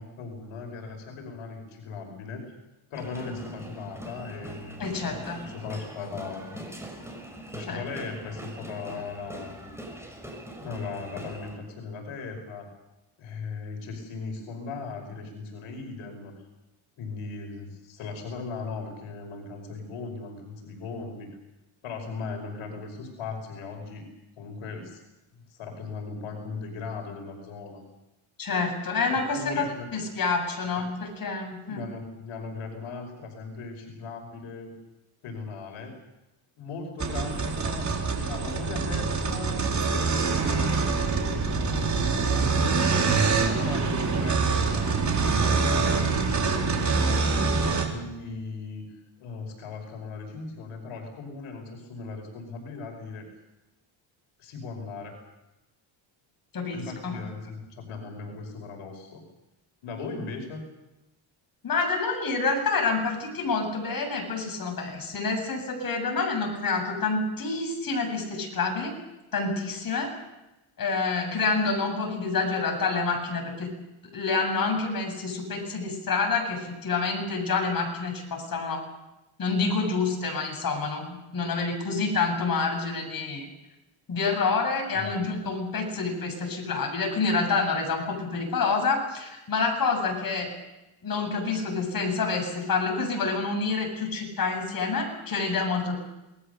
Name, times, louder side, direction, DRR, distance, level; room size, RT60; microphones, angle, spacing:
voice 1, 0.0-2.4 2.9-6.8 7.5-9.7 10.6-12.7 13.2-16.4 17.0-21.3 21.8-24.1 24.4-25.0 25.5-27.8 29.1-29.9 30.7-30.8 31.7-34.7 35.2-36.0 36.6-42.4 42.8-47.4 47.6-48.9 49.2-53.4 54.4-55.2 56.7-59.2 59.8-60.7 84.9-85.2, left 4 dB, 80° left, 3 dB, 5.4 m, -38 dB
sound 1, 2.9-11.6, right 1 dB, 5° right, 5.9 m, -42 dB
voice 2, 4.8-5.4 7.7-7.8 28.4-29.6 29.9-31.8 56.5-57.2 61.6-69.0 69.3-70.1 70.8-73.8 74.1-78.9 79.4-83.5 84.1-90.5 91.0-96.0, left 4 dB, 45° left, 2 dB, 7.9 m, -28 dB
sound 2, 37.0-47.9, right 4 dB, 35° right, 4.5 m, -25 dB
27.5 x 20.5 x 6.7 m, 0.97 s
cardioid pair, 120°, 49 cm